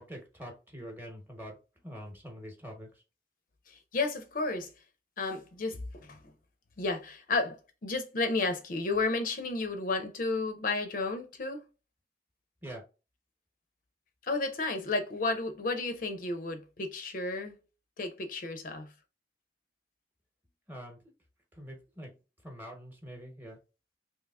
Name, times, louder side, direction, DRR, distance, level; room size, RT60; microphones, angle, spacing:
voice 1, 0.0-3.0 12.6-12.8 20.7-21.0 21.5-22.2 22.4-23.6, equal, 10° right, 0.9 m, -45 dB
voice 2, 3.7-4.7 5.2-6.2 6.8-11.6 14.2-17.5 18.0-18.9, left 3 dB, 50° left, 0.5 m, -32 dB
3.4 x 2.8 x 2.3 m
head